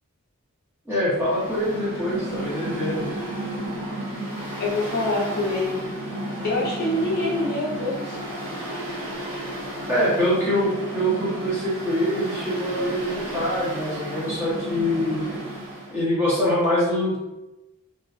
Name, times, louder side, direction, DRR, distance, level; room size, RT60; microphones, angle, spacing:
voice 1, 0.9-3.1 9.9-15.3 15.9-17.2, equal, 10° right, -8 dB, 0.7 m, -24 dB
Mechanical fan, 1.1-15.9, right 1 dB, 70° right, 0.9 m, -33 dB
voice 2, 4.6-5.8 6.4-8.2, left 2 dB, 45° left, -4 dB, 0.5 m, -25 dB
2.5 x 2.1 x 2.4 m, 0.97 s
head